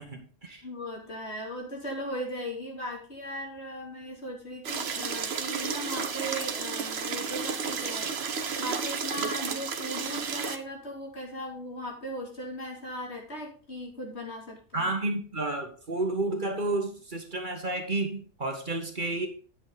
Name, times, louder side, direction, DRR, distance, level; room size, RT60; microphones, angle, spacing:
voice 1, 0.0-0.6 14.7-19.3, right 2 dB, 40° right, 4 dB, 1.5 m, -31 dB
voice 2, 0.6-8.1 8.6-14.9, equal, 55° left, 0 dB, 3.2 m, -38 dB
sound 1, 4.6-10.6, right 6 dB, 55° right, 1.1 m, -32 dB
9.6 x 8.1 x 4.0 m, 0.40 s
omnidirectional pair, 1.3 m